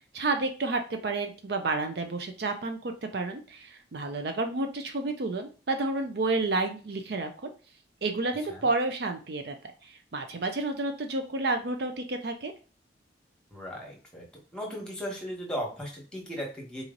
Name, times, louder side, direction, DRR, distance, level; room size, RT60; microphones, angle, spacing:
voice 1, 0.0-7.5 8.0-9.6 9.8-12.5, right 3 dB, 55° right, 5 dB, 0.5 m, -30 dB
voice 2, 13.5-14.2 14.5-16.8, equal, 5° left, -1 dB, 1.2 m, -36 dB
4.0 x 3.0 x 3.8 m, 0.36 s
head